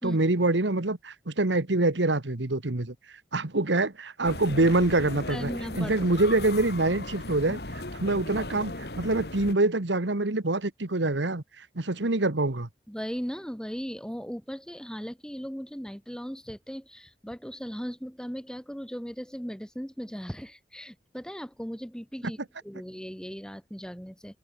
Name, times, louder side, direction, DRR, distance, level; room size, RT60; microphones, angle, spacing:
voice 1, 0.0-3.0 3.3-12.7, right 2 dB, 85° right, 1.6 m, -25 dB
sound 1, 4.2-9.5, left 2 dB, 60° left, 3.4 m, -37 dB
voice 2, 5.3-5.9 12.9-22.4 22.6-24.4, equal, 5° left, 4.3 m, -37 dB
head